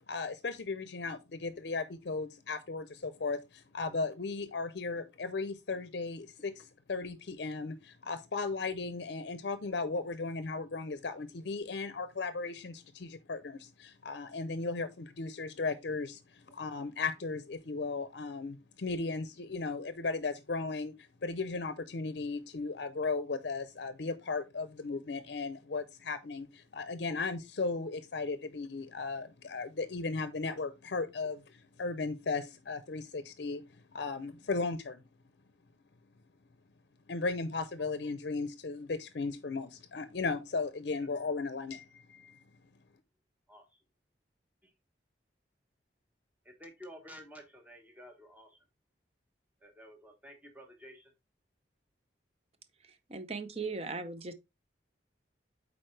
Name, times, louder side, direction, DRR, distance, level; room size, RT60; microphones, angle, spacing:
voice 1, 0.1-20.9 21.2-31.4 31.8-33.6 33.9-35.0 37.1-42.4, left 3 dB, 65° left, 0.6 m, -36 dB
voice 2, 43.5-43.8 44.6-44.7 46.6-48.6 49.6-51.1, equal, 10° right, 1.1 m, -52 dB
voice 3, 52.8-54.3, right 4 dB, 35° right, 0.7 m, -38 dB
8.8 x 4.2 x 3.2 m
head